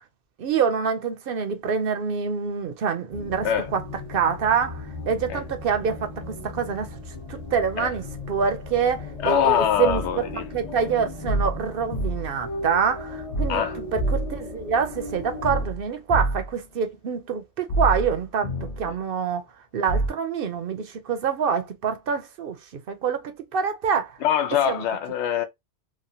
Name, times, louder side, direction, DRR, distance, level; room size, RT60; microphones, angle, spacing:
voice 1, 0.4-3.8 4.1-7.0 7.3-13.6 13.9-19.4 19.7-24.2 24.7-24.8, right 6 dB, 60° right, 0.7 m, -26 dB
sound 1, 3.1-15.7, left 2 dB, 40° left, 0.9 m, -37 dB
voice 2, 9.2-10.4 13.5-13.8 24.2-25.5, left 9 dB, 85° left, 0.9 m, -23 dB
sound 2, 9.9-10.2 11.3-11.6 11.9-12.4 13.3-13.7 14.0-14.4 15.4-16.5 17.7-19.0 19.9-20.1, right 1 dB, 55° left, 0.4 m, -26 dB
3.0 x 2.2 x 2.5 m
omnidirectional pair, 1.1 m